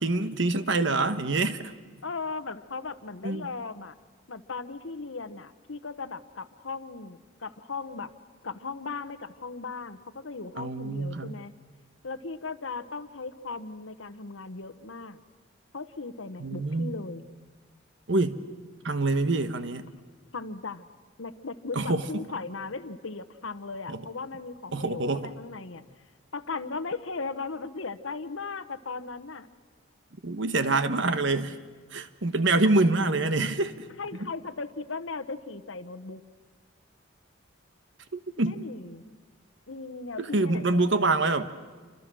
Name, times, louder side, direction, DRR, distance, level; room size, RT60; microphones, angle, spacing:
voice 1, 0.0-1.7 3.2-3.5 10.6-11.4 16.4-16.9 18.1-18.4 18.8-19.9 21.7-22.3 23.9-24.1 24.7-25.3 30.2-31.6 31.9-33.9 38.1-38.6 40.2-41.5, right 2 dB, 60° right, 1.2 m, -26 dB
voice 2, 2.0-4.0 4.3-8.1 8.4-11.5 12.0-15.2 15.7-17.2 20.3-20.8 21.2-25.8 26.3-29.5 34.0-36.2 38.4-39.0 39.7-41.1, left 4 dB, 75° left, 1.1 m, -37 dB
29.0 x 25.5 x 6.2 m
head